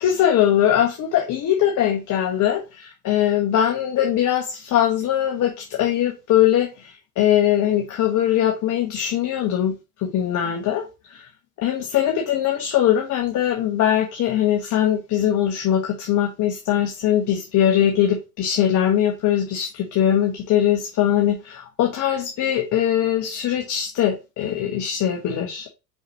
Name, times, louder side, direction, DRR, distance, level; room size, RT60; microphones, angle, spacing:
voice 1, 0.0-11.2 11.6-25.7, left 10 dB, 40° left, 1.3 m, -21 dB
5.7 x 5.5 x 3.0 m
figure-of-eight pair, 70°, 44 cm